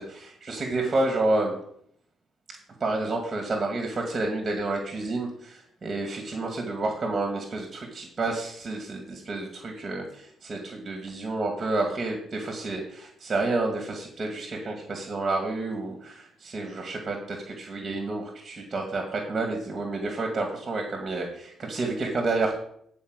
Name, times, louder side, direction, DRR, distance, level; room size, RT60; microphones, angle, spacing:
voice 1, 0.0-1.6 2.8-22.6, right 2 dB, 30° right, 2 dB, 2.0 m, -30 dB
12.0 x 4.5 x 6.4 m, 0.66 s
cardioid pair, 90°, 0 cm